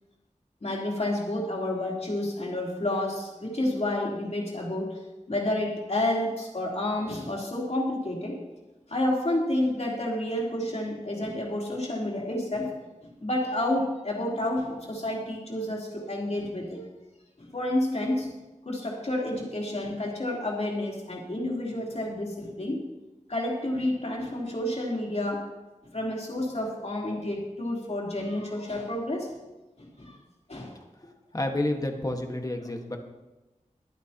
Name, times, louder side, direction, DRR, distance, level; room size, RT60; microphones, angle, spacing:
voice 1, 0.6-5.0 5.3-8.4 8.9-12.7 13.2-16.8 17.4-18.3 18.6-22.8 23.3-25.4 25.9-29.3 29.8-30.2 30.5-30.7, left 1 dB, 55° left, -3 dB, 3.6 m, -30 dB
voice 2, 31.3-33.0, left 1 dB, 25° left, 3 dB, 1.6 m, -29 dB
23.0 x 9.2 x 3.0 m, 1.1 s
wide cardioid pair, 75°, 13 cm